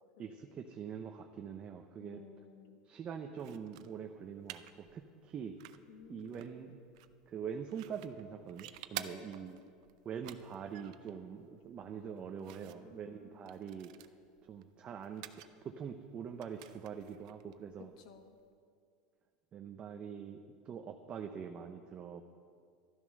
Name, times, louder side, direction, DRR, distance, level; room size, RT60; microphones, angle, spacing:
voice 1, 0.2-2.2 2.8-5.8 6.1-6.8 7.3-9.6 10.0-14.1 14.4-17.9 19.5-20.4 20.6-22.2, right 7 dB, 30° right, 5 dB, 0.7 m, -44 dB
voice 2, 2.0-2.8 5.9-6.5 8.9-9.4 11.9-13.6 17.8-18.4, left 7 dB, 75° left, 6 dB, 1.5 m, -56 dB
sound 1, 3.4-18.5, right 14 dB, 75° right, 0.6 m, -53 dB
12.5 x 11.0 x 6.5 m, 2.2 s
supercardioid pair, 130°, 4 cm